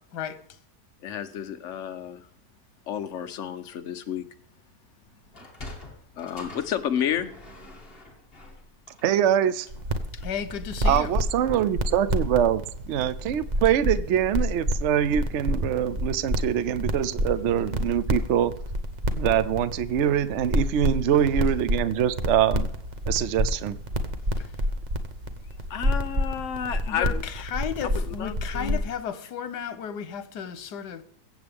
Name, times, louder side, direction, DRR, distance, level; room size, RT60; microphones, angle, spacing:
voice 1, 1.0-2.3 2.9-4.2 6.2-7.3 25.7-27.2 27.9-28.9, left 9 dB, 55° left, 1.1 m, -31 dB
Sliding door, 5.2-9.9, left 2 dB, 35° left, 2.4 m, -45 dB
voice 2, 9.0-9.7 10.8-18.5 19.1-22.7 23.1-23.8, right 9 dB, 55° right, 0.8 m, -24 dB
sound 1, 9.7-28.9, equal, 30° right, 1.0 m, -29 dB
voice 3, 10.1-11.1 24.4-24.5 26.7-31.0, left 8 dB, 85° left, 1.6 m, -34 dB
23.0 x 8.1 x 3.6 m
omnidirectional pair, 1.7 m